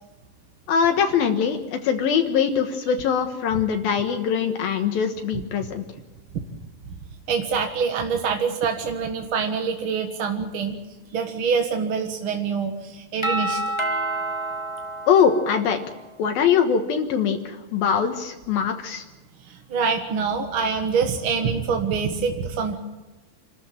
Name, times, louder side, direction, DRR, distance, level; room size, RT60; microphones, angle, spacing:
voice 1, 0.7-5.8 15.1-15.8 16.2-19.0, left 7 dB, 70° left, 5 dB, 3.1 m, -22 dB
voice 2, 7.3-10.8 11.1-13.6 19.4-22.8, right 5 dB, 50° right, 4 dB, 1.7 m, -25 dB
Doorbell, 13.2-16.0, right 1 dB, 15° left, 0.9 m, -28 dB
27.5 x 13.5 x 9.1 m, 1.1 s
omnidirectional pair, 4.5 m